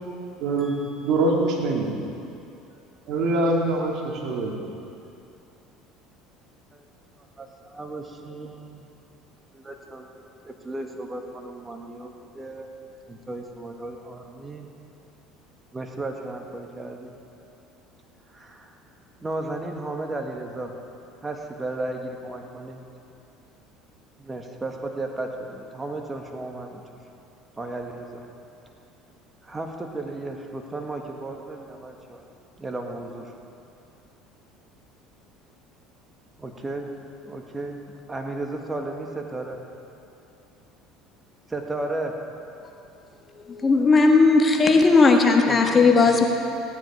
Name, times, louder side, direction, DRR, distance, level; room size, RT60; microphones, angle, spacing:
voice 1, 0.4-2.0 3.1-4.5, right 2 dB, 55° right, -1 dB, 2.4 m, -24 dB
voice 2, 7.4-8.9 9.5-10.1 10.4-12.7 13.1-14.7 15.7-17.1 18.3-18.7 19.2-20.7 21.2-22.8 24.2-26.8 27.6-28.2 29.4-32.2 32.6-33.3 36.4-36.9 37.2-37.8 38.1-39.6 41.5-42.1 45.5-45.8, right 2 dB, 20° right, 3 dB, 1.7 m, -34 dB
voice 3, 43.3-46.2, left 3 dB, 25° left, 2 dB, 1.5 m, -17 dB
16.5 x 9.4 x 4.9 m, 2.6 s
hypercardioid pair, 65°, 0 cm